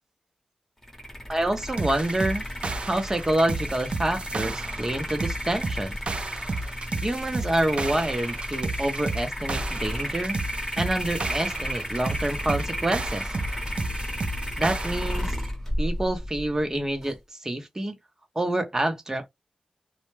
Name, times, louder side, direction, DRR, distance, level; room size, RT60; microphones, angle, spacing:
sound 1, 0.8-17.2, equal, 15° left, 1.0 m, -33 dB
voice 1, 1.3-2.5 2.8-6.0 6.9-10.4 10.8-13.3 14.6-15.4 15.8-18.0 18.4-19.3, right 1 dB, 20° right, 0.7 m, -27 dB
sound 2, 1.8-15.3, right 3 dB, 50° right, 0.4 m, -33 dB
2.1 x 2.1 x 3.1 m
wide cardioid pair, 85°, 2 cm